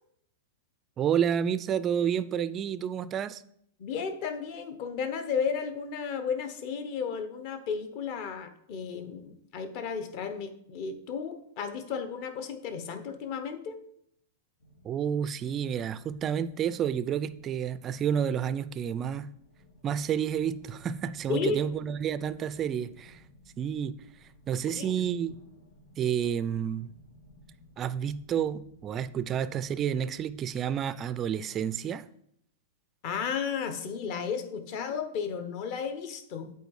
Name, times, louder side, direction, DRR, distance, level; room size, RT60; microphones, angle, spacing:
voice 1, 1.0-3.4 14.8-19.3 19.8-23.2 23.6-24.0 24.5-25.4 26.0-26.9 27.8-32.0, right 8 dB, 25° right, 0.3 m, -30 dB
voice 2, 3.8-13.8 21.3-21.6 24.6-25.1 33.0-36.5, left 6 dB, 45° left, 1.0 m, -33 dB
sound 1, 14.6-30.8, left 1 dB, 80° left, 2.9 m, -58 dB
8.0 x 4.5 x 4.8 m
supercardioid pair, 150°, 0 cm